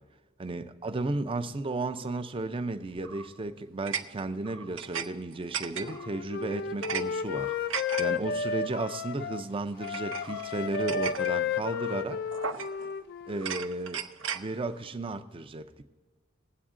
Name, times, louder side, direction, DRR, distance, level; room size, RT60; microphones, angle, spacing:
voice 1, 0.4-12.2 13.3-14.0 14.3-15.8, right 2 dB, 25° right, 8 dB, 0.5 m, -34 dB
sound 1, 3.0-3.3 3.9-5.1 5.3-6.1 6.5-7.0 7.4-8.0 8.8-9.0 9.8-11.3 11.7-11.9 12.3-12.9 13.3-14.5, right 7 dB, 70° right, 0.6 m, -36 dB
Wind instrument woodwind instrument, 5.8-9.4 9.8-13.4, left 6 dB, 55° left, 0.4 m, -32 dB
20.0 x 7.9 x 3.7 m, 1.4 s
head